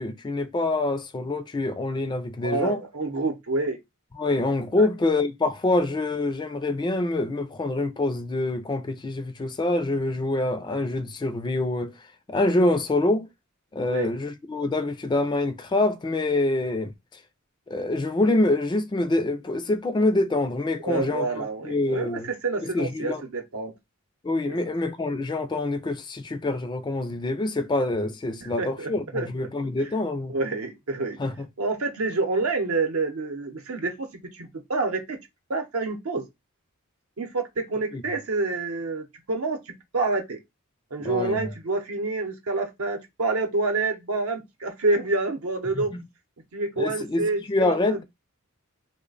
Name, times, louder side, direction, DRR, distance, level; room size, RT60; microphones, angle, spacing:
voice 1, 0.0-2.8 4.2-11.9 12.3-13.3 13.7-17.2 17.7-22.3 22.6-23.2 24.2-30.3 31.2-31.5 37.9-38.0 41.0-41.4 45.7-46.0 46.8-48.0, left 2 dB, 20° left, 0.3 m, -26 dB
voice 2, 2.4-3.8 4.8-4.9 13.8-14.1 20.8-23.7 24.5-24.6 28.4-29.3 29.8-29.9 30.3-31.2 31.6-35.2 35.5-36.2 37.2-39.6 39.9-40.4 40.9-45.9 46.5-48.0, right 3 dB, 75° right, 0.7 m, -28 dB
3.2 x 2.1 x 3.8 m
head